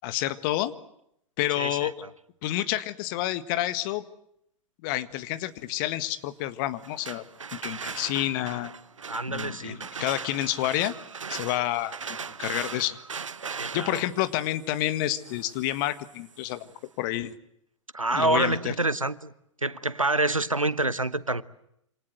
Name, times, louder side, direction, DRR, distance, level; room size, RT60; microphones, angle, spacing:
voice 1, 0.0-0.7 1.4-1.9 2.4-4.0 4.8-7.2 7.6-8.7 9.3-10.9 11.3-13.0 13.7-16.6 17.0-17.3 18.1-18.7, left 14 dB, 40° left, 1.7 m, -29 dB
voice 2, 1.6-2.1 9.1-9.8 13.5-14.0 17.9-19.3 19.6-21.4, right 2 dB, 90° right, 1.1 m, -27 dB
sound 1, 6.8-16.6, right 5 dB, 75° right, 1.3 m, -39 dB
27.5 x 27.0 x 8.0 m
figure-of-eight pair, 105°, 17 cm